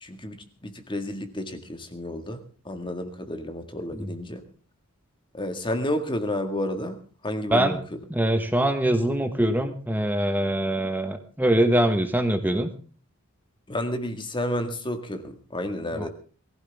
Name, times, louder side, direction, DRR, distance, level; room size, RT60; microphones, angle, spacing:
voice 1, 0.0-4.4 5.3-8.0 13.7-16.1, left 1 dB, 20° left, 7 dB, 1.9 m, -31 dB
voice 2, 8.1-12.7 15.9-16.1, right 1 dB, 10° right, 7 dB, 1.3 m, -23 dB
21.5 x 15.5 x 3.6 m, 0.38 s
head